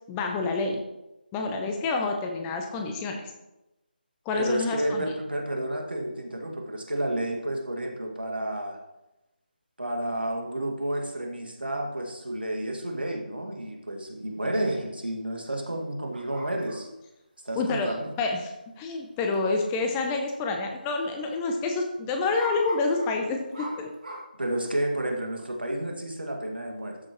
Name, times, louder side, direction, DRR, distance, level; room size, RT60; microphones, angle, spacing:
voice 1, 0.1-0.8 1.3-3.3 4.3-5.1 17.6-23.9, left 3 dB, 10° left, 3 dB, 0.6 m, -28 dB
voice 2, 4.3-8.8 9.8-16.9 17.4-18.1 24.4-27.0, right 1 dB, 80° right, 1 dB, 2.0 m, -31 dB
sound 1, 16.1-17.0 18.9-19.0 19.3-19.4 20.1-20.3 20.6-20.7 22.4-24.2, right 1 dB, 60° right, 2.2 m, -41 dB
13.0 x 6.2 x 3.1 m, 0.96 s
figure-of-eight pair, 155°, 5 cm